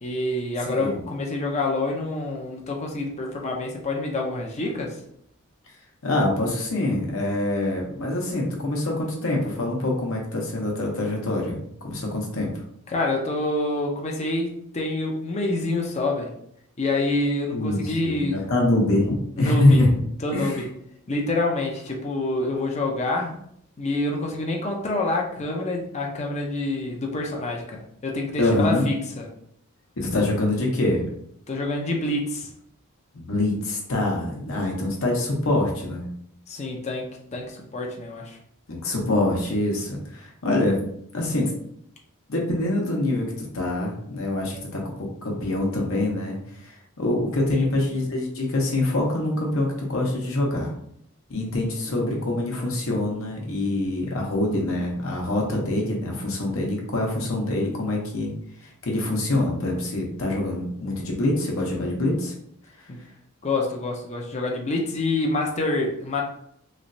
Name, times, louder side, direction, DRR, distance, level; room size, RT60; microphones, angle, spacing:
voice 1, 0.0-5.0 12.9-16.3 16.8-18.4 19.4-19.8 20.2-20.7 21.1-23.3 23.8-29.3 31.5-32.5 36.5-38.4 47.5-47.6 62.9-63.0 63.4-66.2, left 2 dB, 30° left, 0 dB, 0.5 m, -27 dB
voice 2, 0.7-1.0 6.0-12.6 17.5-19.9 20.3-20.6 28.4-28.8 30.0-31.0 33.1-36.1 38.7-40.8 41.1-41.5 42.3-44.9 45.2-50.7 51.3-58.3 58.6-62.3 62.8-62.9, left 2 dB, 65° left, -1 dB, 0.9 m, -25 dB
3.1 x 3.0 x 2.6 m, 0.69 s
head